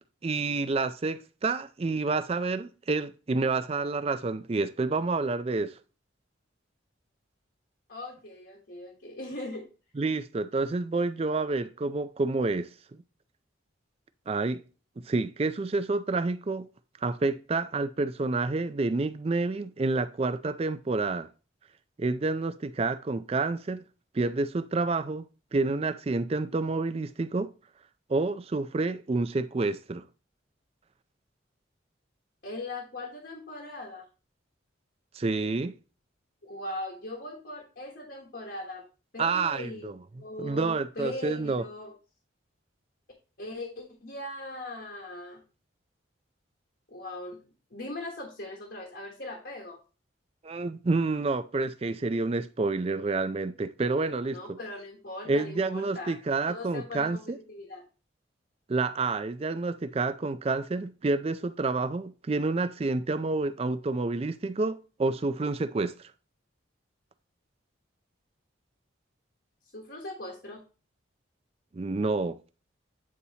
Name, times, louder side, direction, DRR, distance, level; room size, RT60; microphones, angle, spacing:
voice 1, 0.2-5.8 10.0-13.0 14.3-14.6 15.1-16.7 17.0-21.3 22.0-23.8 24.1-27.5 28.1-30.0 35.1-35.7 39.2-40.0 40.4-41.6 50.4-54.6 55.3-57.4 58.7-65.9 71.7-72.4, right 3 dB, 30° right, 0.4 m, -29 dB
voice 2, 7.9-9.7 32.4-34.0 36.4-38.8 39.1-41.9 43.4-45.4 46.9-47.4 47.7-49.8 54.3-56.2 56.5-57.2 57.5-57.8 69.7-70.6, left 2 dB, 55° left, 1.2 m, -39 dB
8.5 x 4.1 x 2.8 m
head